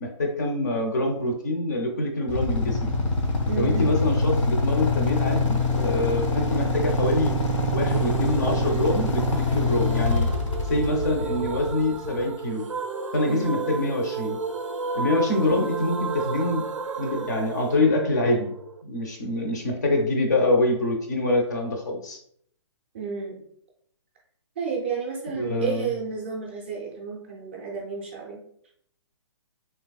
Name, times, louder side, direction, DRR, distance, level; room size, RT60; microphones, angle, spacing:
voice 1, 0.0-2.9 3.6-7.4 7.7-10.3 10.7-12.6 13.1-14.4 14.9-16.6 17.0-18.5 18.8-22.2 25.4-25.9, left 2 dB, 35° left, 2 dB, 0.5 m, -25 dB
Motorcycle / Idling, 2.3-12.2, left 2 dB, 85° left, 0.7 m, -24 dB
voice 2, 3.5-3.9 13.3-13.6 22.9-23.4 24.6-28.4, right 5 dB, 25° right, -1 dB, 0.4 m, -31 dB
sound 1, 7.9-18.8, right 4 dB, 90° right, 0.4 m, -33 dB
3.4 x 2.8 x 2.3 m, 0.67 s
hypercardioid pair, 170°, 16 cm